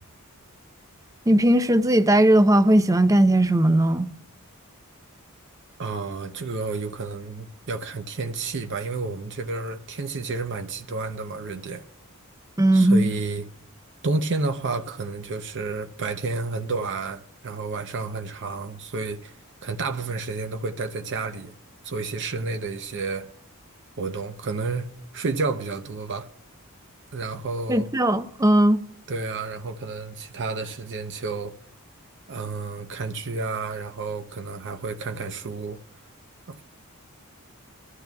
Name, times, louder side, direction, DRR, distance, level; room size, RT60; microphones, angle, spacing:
voice 1, 1.3-4.1 12.6-13.1 27.7-28.8, right 1 dB, 15° right, 0.5 m, -18 dB
voice 2, 5.8-11.8 12.7-13.5 14.0-19.3 19.6-21.5 21.8-23.3 24.0-24.9 25.1-26.3 27.1-27.9 29.1-31.5 32.3-35.8 36.5-36.6, right 3 dB, 55° right, 0.7 m, -30 dB
23.0 x 13.0 x 2.3 m
head